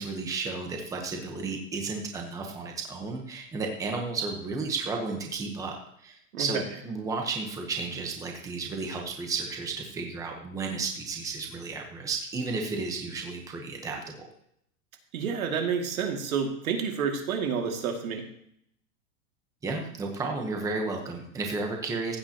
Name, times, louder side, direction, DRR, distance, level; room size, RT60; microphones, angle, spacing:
voice 1, 0.0-5.8 6.0-14.3 19.6-22.2, right 4 dB, 10° right, 2 dB, 1.0 m, -33 dB
voice 2, 15.1-18.2, right 6 dB, 90° right, 3 dB, 2.4 m, -29 dB
15.5 x 8.7 x 2.9 m, 0.71 s
supercardioid pair, 170°, 41 cm